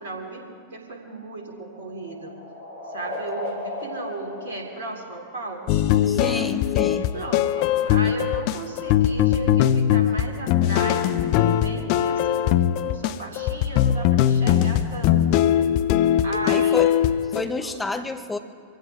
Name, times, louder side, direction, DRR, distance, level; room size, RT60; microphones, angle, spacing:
voice 1, 0.0-2.3 2.9-6.6 7.1-15.5 16.2-16.9 17.6-17.8, right 2 dB, 65° right, 2 dB, 2.7 m, -36 dB
sound 1, 0.9-5.7, left 2 dB, 75° left, 3.7 m, -36 dB
sound 2, 5.7-17.4, left 10 dB, 45° left, 0.6 m, -21 dB
voice 2, 6.1-7.1 16.4-16.9 17.3-18.4, left 3 dB, 10° left, 7 dB, 1.0 m, -30 dB
24.0 x 15.5 x 3.5 m, 2.2 s
figure-of-eight pair, 90°, 0 cm